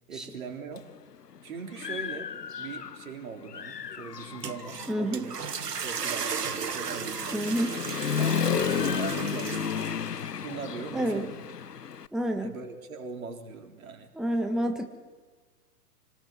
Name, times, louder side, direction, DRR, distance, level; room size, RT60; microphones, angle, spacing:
voice 1, 0.1-0.9 1.4-5.4 5.8-7.5 8.2-10.0 10.4-11.4 12.4-14.1, right 5 dB, 60° right, 4 dB, 3.8 m, -40 dB
Human voice / Motorcycle, 0.8-0.9 1.4-3.1 3.5-12.1, left 7 dB, 90° left, 0.8 m, -33 dB
sound 1, 4.2-10.3, right 6 dB, 85° right, 1.1 m, -35 dB
voice 2, 4.9-5.3 7.3-7.8 10.9-11.2 12.1-12.6 14.1-14.9, right 1 dB, ahead, 4 dB, 1.5 m, -28 dB
27.5 x 19.5 x 8.2 m, 1.4 s
figure-of-eight pair, 110°, 46 cm